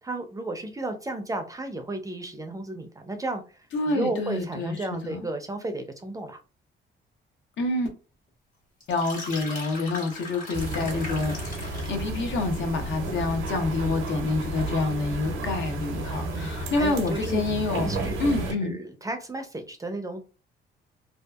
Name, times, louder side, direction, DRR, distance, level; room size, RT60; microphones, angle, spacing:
voice 1, 0.0-6.4 16.2-17.4 17.7-20.2, right 2 dB, 15° right, 0.4 m, -34 dB
voice 2, 3.7-5.2 7.6-7.9 8.9-17.9 18.2-18.8, left 3 dB, 70° left, 0.7 m, -28 dB
sound 1, 8.8-12.1, left 2 dB, 45° left, 1.3 m, -38 dB
sound 2, 10.5-18.5, right 2 dB, 85° right, 0.7 m, -32 dB
2.7 x 2.3 x 2.3 m
cardioid pair, 90°, 20 cm